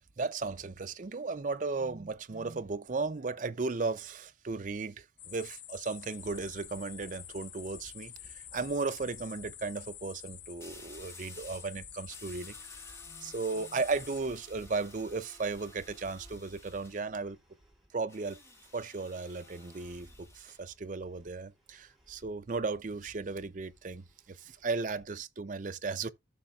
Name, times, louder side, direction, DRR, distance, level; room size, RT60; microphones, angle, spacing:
voice 1, 0.2-17.4 17.9-18.4 18.7-26.1, right 4 dB, 45° right, 0.5 m, -36 dB
sound 1, 5.2-14.2, left 11 dB, 65° left, 0.7 m, -49 dB
sound 2, 6.2-25.0, equal, ahead, 3.0 m, -60 dB
sound 3, 7.7-7.8 10.6-11.7 12.1-17.1 18.1-20.6, left 2 dB, 15° left, 1.5 m, -54 dB
14.5 x 5.9 x 2.4 m
head